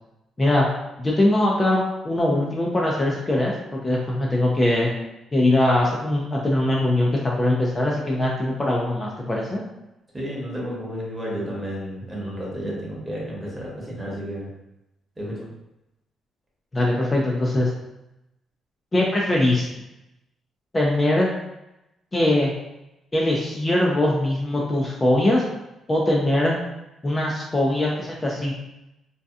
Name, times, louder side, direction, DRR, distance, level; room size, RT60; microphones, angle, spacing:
voice 1, 1.0-4.9 5.3-9.6 16.7-17.7 18.9-19.7 20.7-21.3 22.1-22.5 23.1-25.4 25.9-26.6 27.0-28.5, left 1 dB, 25° left, -3 dB, 0.4 m, -21 dB
voice 2, 10.1-14.5 15.2-15.4, equal, 20° right, -4 dB, 1.0 m, -31 dB
2.6 x 2.2 x 2.3 m, 0.91 s
cardioid pair, 90°, 0 cm